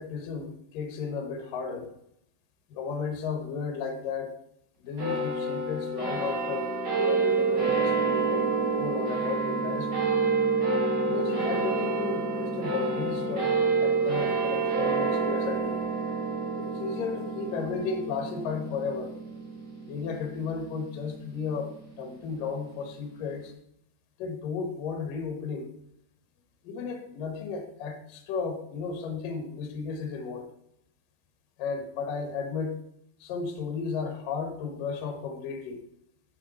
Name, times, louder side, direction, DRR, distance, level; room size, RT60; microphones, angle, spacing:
voice 1, 0.0-1.9 2.7-4.4 4.8-6.7 7.0-10.0 11.0-13.5 13.8-15.8 16.6-19.2 19.9-23.5 24.2-25.7 26.6-30.5 31.6-32.8 33.2-35.8, left 5 dB, 65° left, 4 dB, 2.4 m, -34 dB
sound 1, 5.0-21.7, right 4 dB, 25° right, 2.7 m, -28 dB
9.9 x 6.0 x 4.2 m, 0.75 s
omnidirectional pair, 5.5 m